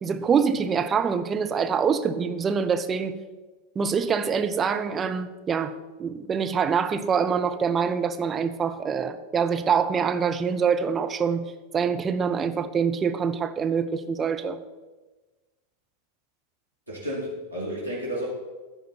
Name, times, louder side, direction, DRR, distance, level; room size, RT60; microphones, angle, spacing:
voice 1, 0.0-3.2 3.8-5.7 6.0-14.6, right 6 dB, 20° right, 8 dB, 0.7 m, -25 dB
voice 2, 16.9-18.3, equal, 85° right, -5 dB, 2.9 m, -31 dB
14.5 x 5.1 x 4.4 m, 1.2 s
figure-of-eight pair, 90°, 0 cm